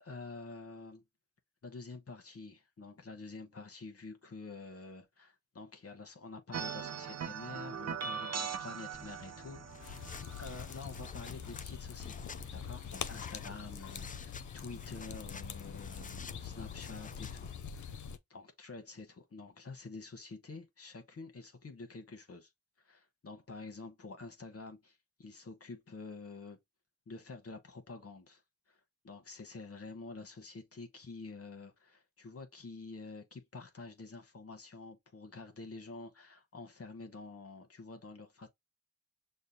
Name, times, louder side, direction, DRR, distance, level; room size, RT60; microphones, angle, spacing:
voice 1, 0.0-1.0 1.6-17.5 17.7-18.0 18.3-22.5 22.8-26.6 27.1-28.4 28.7-38.5, left 3 dB, 50° left, 1.0 m, -48 dB
sound 1, 6.5-11.9, right 7 dB, 60° right, 0.6 m, -41 dB
sound 2, 8.9-17.5, left 5 dB, 30° left, 0.3 m, -51 dB
sound 3, 9.8-18.2, left 7 dB, 80° left, 0.6 m, -44 dB
6.4 x 2.2 x 2.7 m
cardioid pair, 55°, 30 cm